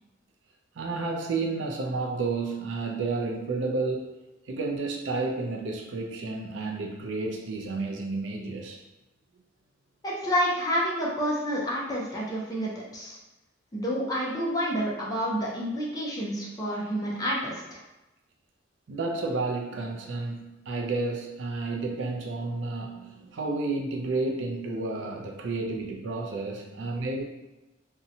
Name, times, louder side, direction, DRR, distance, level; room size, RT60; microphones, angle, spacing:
voice 1, 0.8-4.1 4.5-8.8 18.9-27.2, right 3 dB, 70° right, 1 dB, 0.4 m, -31 dB
voice 2, 10.0-13.2 13.7-17.8, equal, 20° left, -4 dB, 0.5 m, -29 dB
2.7 x 2.1 x 2.7 m, 1.0 s
head